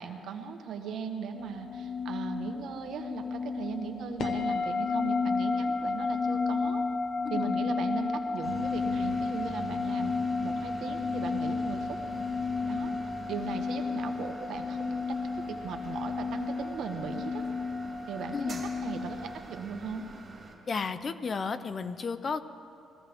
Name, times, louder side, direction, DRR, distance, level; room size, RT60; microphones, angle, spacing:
voice 1, 0.0-6.8 7.3-10.1 10.4-12.0 12.6-12.9 13.3-17.4 18.1-20.1, right 6 dB, 70° right, 5 dB, 1.3 m, -38 dB
sound 1, 1.4-19.4, left 4 dB, 65° left, 1.2 m, -32 dB
sound 2, 8.4-20.6, right 3 dB, 35° right, 3.1 m, -45 dB
voice 2, 20.7-22.4, left 5 dB, 40° left, 13 dB, 0.6 m, -33 dB
20.5 x 15.0 x 3.5 m, 2.9 s
cardioid pair, 90°, 0 cm